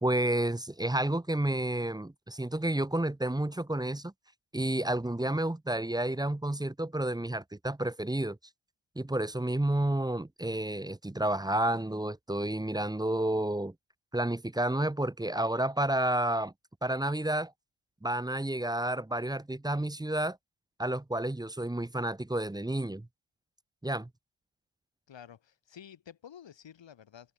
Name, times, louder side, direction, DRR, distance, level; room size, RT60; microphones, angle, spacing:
voice 1, 0.0-4.1 4.5-8.4 8.9-13.7 14.1-16.5 16.8-17.5 18.0-20.4 20.8-23.1 23.8-24.1, right 1 dB, 10° right, 1.3 m, -30 dB
voice 2, 25.1-27.3, left 9 dB, 70° left, 7.1 m, -51 dB
cardioid pair, 110°, 46 cm